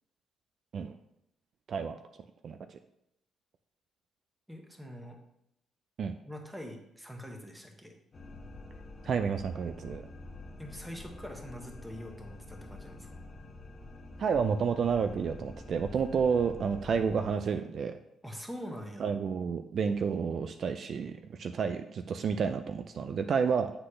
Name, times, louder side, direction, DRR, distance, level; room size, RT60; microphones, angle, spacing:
voice 1, 2.4-2.8 6.0-6.1 9.0-10.0 14.2-18.0 19.0-23.7, right 6 dB, 55° right, 8 dB, 0.3 m, -30 dB
voice 2, 4.5-5.2 6.2-7.9 10.6-13.2 18.2-19.1, equal, 5° right, 2 dB, 1.1 m, -44 dB
sound 1, 8.1-17.3, left 2 dB, 40° left, 0.9 m, -47 dB
7.8 x 3.9 x 3.3 m, 0.81 s
cardioid pair, 90°, 0 cm